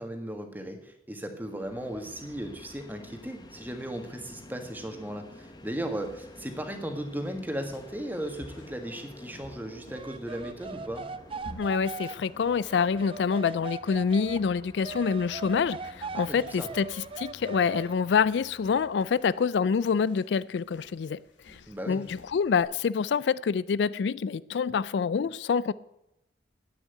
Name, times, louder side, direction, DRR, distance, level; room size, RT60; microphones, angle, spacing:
voice 1, 0.0-11.1 16.1-16.7 21.7-22.0, right 1 dB, 10° right, 1.6 m, -36 dB
Train, 1.4-19.5, left 1 dB, 20° left, 1.0 m, -51 dB
sound 1, 5.5-22.6, left 1 dB, 85° left, 2.7 m, -55 dB
sound 2, 9.9-14.4 14.8-18.0, right 4 dB, 30° right, 0.4 m, -40 dB
voice 2, 11.6-16.8 17.2-21.2 21.5-21.6 21.9-25.7, left 6 dB, 70° left, 0.4 m, -26 dB
10.5 x 9.0 x 9.4 m
head